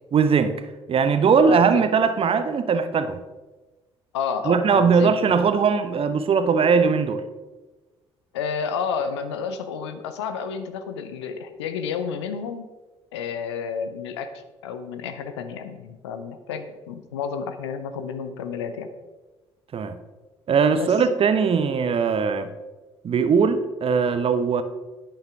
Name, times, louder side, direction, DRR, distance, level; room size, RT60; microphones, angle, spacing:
voice 1, 0.1-0.5 0.9-3.2 4.4-7.2 19.7-20.0 20.5-22.5 23.0-24.6, right 5 dB, 40° right, 10 dB, 0.9 m, -20 dB
voice 2, 1.4-1.9 4.1-5.4 8.3-12.7 13.1-14.3 14.6-18.9 20.8-21.0, left 6 dB, 70° left, 9 dB, 0.7 m, -31 dB
11.0 x 9.3 x 3.5 m, 1.2 s
figure-of-eight pair, 45°, 15 cm